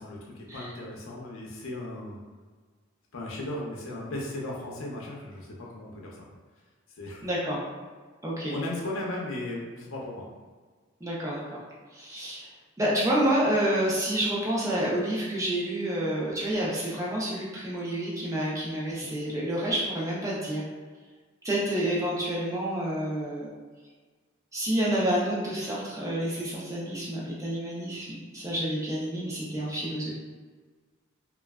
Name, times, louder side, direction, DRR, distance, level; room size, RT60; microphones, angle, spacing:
voice 1, 0.0-2.2 3.1-6.2 6.9-7.2 8.5-10.3 19.0-19.1 30.0-30.1, left 1 dB, 80° left, -3 dB, 0.6 m, -36 dB
voice 2, 7.2-7.6 8.2-8.6 11.0-11.4 11.9-12.5 12.8-20.6 21.4-23.5 24.5-28.1 28.3-30.1, right 1 dB, 15° right, -6 dB, 0.6 m, -28 dB
3.1 x 2.3 x 2.3 m, 1.4 s
head